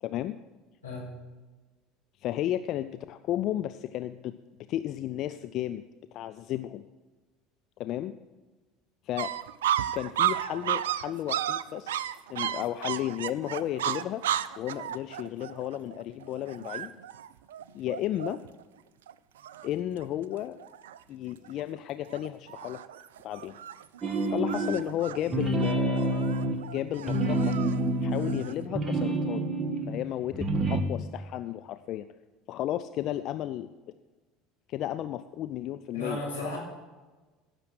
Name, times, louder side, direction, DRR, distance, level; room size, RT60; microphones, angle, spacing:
voice 1, 0.0-0.4 2.2-4.3 4.7-5.8 6.1-6.8 7.8-8.1 9.1-9.3 9.9-12.0 12.3-14.2 14.6-16.9 17.7-18.4 19.6-20.6 21.1-22.8 23.2-23.6 24.3-26.4 26.6-27.6 28.0-29.5 29.9-32.1 32.5-33.7 34.7-36.2, left 12 dB, 50° left, 12 dB, 0.4 m, -33 dB
sound 1, 9.2-18.6 19.1-19.2 19.4-20.0 20.3-21.0 21.4-21.8 22.1-28.6, right 11 dB, 75° right, 0.4 m, -33 dB
sound 2, 24.0-24.9 25.3-29.9 30.3-30.8, right 2 dB, 25° right, 1.6 m, -28 dB
voice 2, 35.9-36.6, left 2 dB, 90° left, -5 dB, 4.9 m, -34 dB
16.0 x 6.7 x 6.3 m, 1.2 s
figure-of-eight pair, 70°, 0 cm